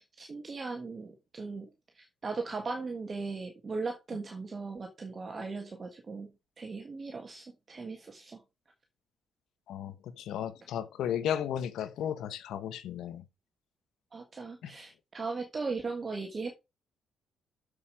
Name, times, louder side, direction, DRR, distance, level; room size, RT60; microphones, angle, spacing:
voice 1, 0.0-1.7 2.0-6.3 6.6-8.4 14.1-16.5, right 4 dB, 35° right, 1.7 m, -38 dB
voice 2, 9.7-13.2 14.6-14.7, left 10 dB, 80° left, 1.2 m, -34 dB
7.3 x 6.7 x 4.9 m
cardioid pair, 90°, 0 cm